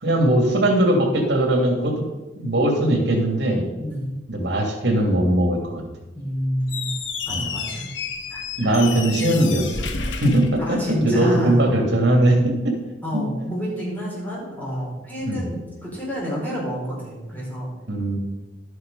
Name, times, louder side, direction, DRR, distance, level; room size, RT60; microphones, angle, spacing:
voice 1, 0.0-2.0 2.4-3.7 4.3-5.8 7.3-7.5 8.6-9.9 10.2-12.8 13.1-13.5 15.2-15.5 17.9-18.2, right 1 dB, 65° right, 2 dB, 2.6 m, -20 dB
voice 2, 3.8-4.1 6.1-6.9 7.3-7.9 8.3-8.8 10.6-11.6 13.0-17.7, equal, 10° left, -5 dB, 4.7 m, -29 dB
Squeak, 6.6-11.3, left 5 dB, 80° left, 1.1 m, -31 dB
12.0 x 8.0 x 5.5 m, 1.1 s
head